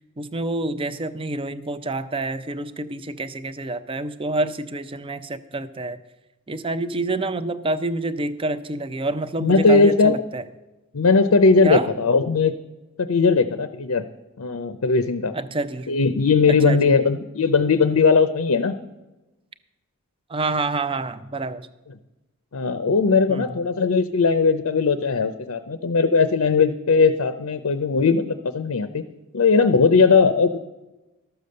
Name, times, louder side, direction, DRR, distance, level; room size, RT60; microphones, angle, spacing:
voice 1, 0.2-6.0 6.5-10.4 11.6-11.9 15.3-15.9 16.6-16.9 20.3-21.7 23.3-23.6, right 2 dB, 25° right, 13 dB, 0.5 m, -27 dB
voice 2, 9.4-10.2 10.9-12.5 13.0-14.0 14.4-15.3 15.9-18.7 22.5-29.0 29.3-30.6, left 4 dB, 75° left, 10 dB, 0.6 m, -19 dB
13.0 x 6.9 x 6.5 m, 1.0 s
head